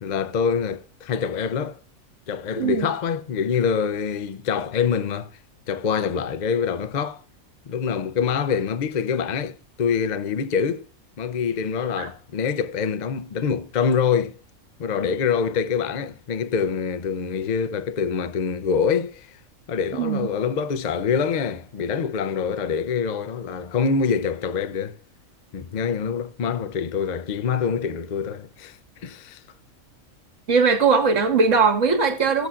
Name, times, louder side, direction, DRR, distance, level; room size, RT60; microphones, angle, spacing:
voice 1, 0.0-1.8 2.3-5.3 5.7-7.2 7.7-10.9 11.2-14.4 14.8-19.4 19.7-24.9 25.5-29.4, left 6 dB, 50° left, 0.5 m, -25 dB
voice 2, 2.5-2.9 12.0-12.1 19.9-20.3 30.5-32.5, right 5 dB, 65° right, 2.0 m, -20 dB
16.5 x 7.9 x 2.5 m
omnidirectional pair, 1.4 m